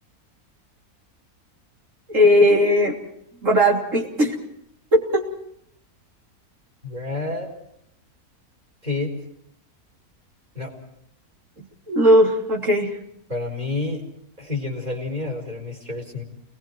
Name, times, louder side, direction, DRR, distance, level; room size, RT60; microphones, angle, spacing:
voice 1, 2.1-2.9 3.4-4.4 4.9-5.3 11.9-12.9, equal, 55° right, -1 dB, 3.7 m, -17 dB
voice 2, 6.8-7.5 8.8-9.1 10.5-10.7 13.3-14.0 14.4-16.2, left 3 dB, 30° right, 0 dB, 4.5 m, -29 dB
29.0 x 20.0 x 4.6 m, 0.74 s
omnidirectional pair, 1.6 m